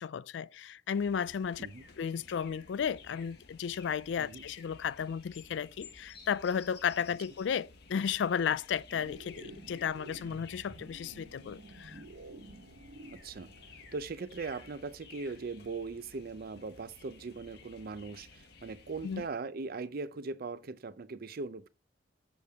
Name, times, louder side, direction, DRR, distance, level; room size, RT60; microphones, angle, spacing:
voice 1, 0.0-1.7 2.0-12.0 19.0-19.2, left 7 dB, 80° left, 0.3 m, -34 dB
sound 1, 0.9-19.3, left 5 dB, 60° left, 1.2 m, -55 dB
sound 2, 8.9-14.0, right 2 dB, 80° right, 1.3 m, -51 dB
voice 2, 13.1-13.5 13.9-21.7, right 4 dB, 55° right, 0.5 m, -40 dB
7.1 x 6.6 x 3.5 m
head